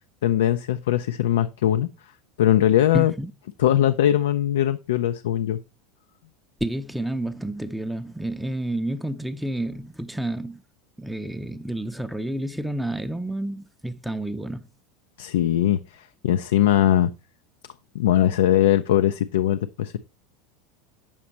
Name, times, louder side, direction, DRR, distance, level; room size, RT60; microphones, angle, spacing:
voice 1, 0.2-1.9 2.4-3.1 3.6-5.6 15.2-17.1 17.9-20.0, left 11 dB, 80° left, 0.3 m, -21 dB
voice 2, 2.9-3.3 6.6-10.6 11.0-14.7, right 1 dB, 5° right, 0.5 m, -30 dB
7.2 x 5.0 x 4.2 m
hypercardioid pair, 95°, 0 cm